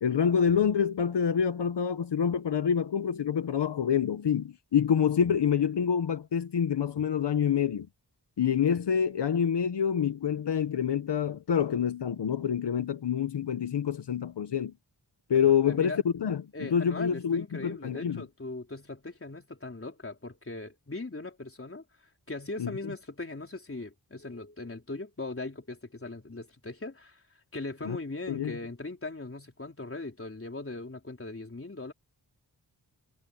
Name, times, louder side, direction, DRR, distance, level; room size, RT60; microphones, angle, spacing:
voice 1, 0.0-7.9 8.4-14.7 15.3-18.2 22.6-22.7 27.8-28.0 28.3-28.6, left 8 dB, 80° left, 1.0 m, -27 dB
voice 2, 15.3-16.0 16.5-21.8 22.3-27.2 27.5-31.9, left 2 dB, 30° left, 3.9 m, -39 dB
wide cardioid pair, 100°, 41 cm